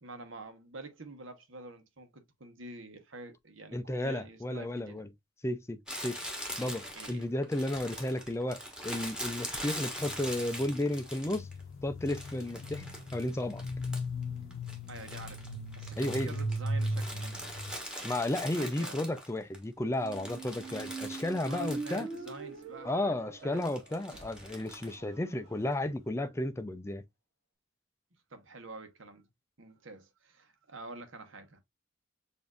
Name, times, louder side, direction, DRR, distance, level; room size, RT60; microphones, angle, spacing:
voice 1, 0.0-5.0 6.6-7.3 14.9-15.4 15.7-17.5 18.6-19.0 21.5-23.1 23.4-23.8 28.3-29.3 29.6-31.6, right 2 dB, 70° right, 1.1 m, -47 dB
voice 2, 3.7-5.1 5.4-6.2 6.6-11.5 11.8-12.9 13.1-13.6 16.0-16.4 18.0-22.1 22.8-27.0, left 1 dB, 15° left, 0.4 m, -33 dB
Crumpling crinkling, 5.9-11.6 12.1-14.2 14.5-19.6 19.9-22.4 22.6-22.7 23.6-24.9, equal, 5° right, 1.3 m, -42 dB
sound 1, 10.0-17.7, equal, 75° left, 0.7 m, -37 dB
Squeak, 19.8-25.8, right 4 dB, 35° right, 1.8 m, -44 dB
6.9 x 2.7 x 2.4 m
head